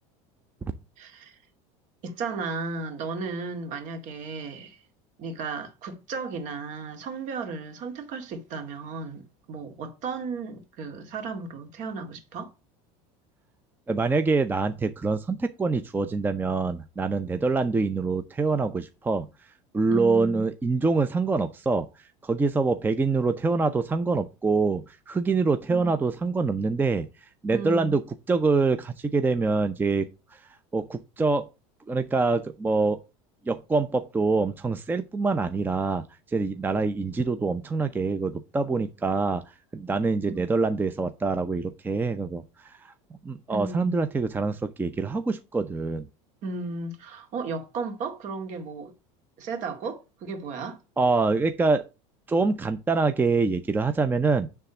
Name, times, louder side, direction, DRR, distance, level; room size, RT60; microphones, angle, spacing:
voice 1, 1.0-1.4 2.0-4.8 5.2-12.5 19.9-20.5 25.7-26.0 27.5-28.0 40.3-40.4 43.5-44.1 46.4-48.9 49.4-50.8, right 4 dB, 50° right, 2.1 m, -34 dB
voice 2, 13.9-19.3 19.7-21.9 22.2-27.1 27.4-28.0 28.3-30.1 30.7-31.4 31.9-33.0 33.5-36.0 36.3-39.4 39.7-42.9 43.2-46.1 51.0-51.8 52.3-54.5, right 4 dB, 10° right, 0.5 m, -25 dB
9.8 x 3.5 x 6.9 m
supercardioid pair, 120°, 16 cm